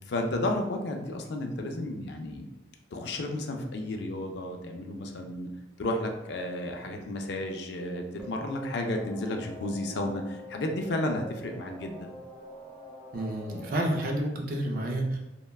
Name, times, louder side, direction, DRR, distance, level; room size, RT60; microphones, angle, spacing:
voice 1, 0.1-2.5 2.9-5.5 5.8-12.2, left 1 dB, 60° left, 3 dB, 0.3 m, -32 dB
sound 1, 8.2-14.2, equal, ahead, 0.6 m, -45 dB
voice 2, 13.1-15.2, right 1 dB, 45° right, 1 dB, 0.4 m, -29 dB
3.2 x 2.1 x 2.2 m, 0.94 s
head